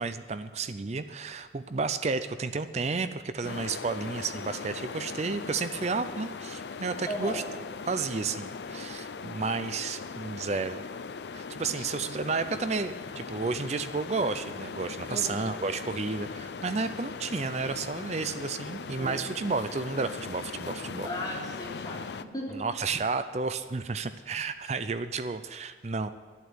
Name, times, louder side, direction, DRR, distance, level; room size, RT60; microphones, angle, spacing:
voice 1, 0.0-7.4 7.9-10.8 11.3-21.1 22.5-26.1, right 4 dB, 40° right, 11 dB, 0.5 m, -32 dB
sound 1, 3.4-22.2, left 5 dB, 70° left, 0.5 m, -39 dB
voice 2, 7.1-7.4 11.8-11.9 15.1-15.4 18.8-19.2 21.0-22.6, left 1 dB, 25° left, -5 dB, 3.6 m, -36 dB
12.0 x 8.2 x 9.4 m, 1.5 s
head